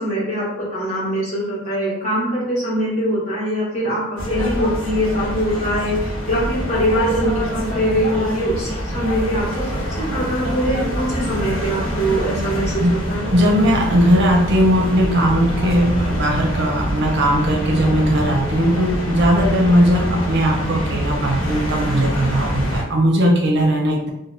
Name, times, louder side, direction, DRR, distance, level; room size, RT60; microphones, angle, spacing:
voice 1, 0.0-9.6 10.0-13.3, equal, 35° left, -8 dB, 1.3 m, -22 dB
sound 1, 4.2-22.8, equal, 90° left, 1.0 m, -25 dB
voice 2, 13.3-24.1, equal, 55° right, 1 dB, 0.6 m, -18 dB
2.8 x 2.2 x 3.2 m, 0.86 s
head